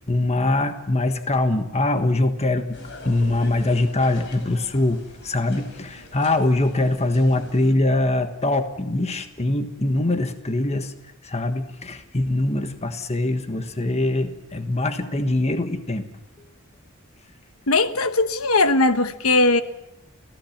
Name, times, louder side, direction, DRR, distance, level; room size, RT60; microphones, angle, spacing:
voice 1, 0.1-10.9 11.2-16.0, left 2 dB, 30° left, 1.4 m, -23 dB
sound 1, 2.7-7.7, left 2 dB, 60° left, 4.6 m, -43 dB
voice 2, 17.7-19.6, left 2 dB, 85° left, 1.2 m, -19 dB
30.0 x 15.5 x 7.3 m
head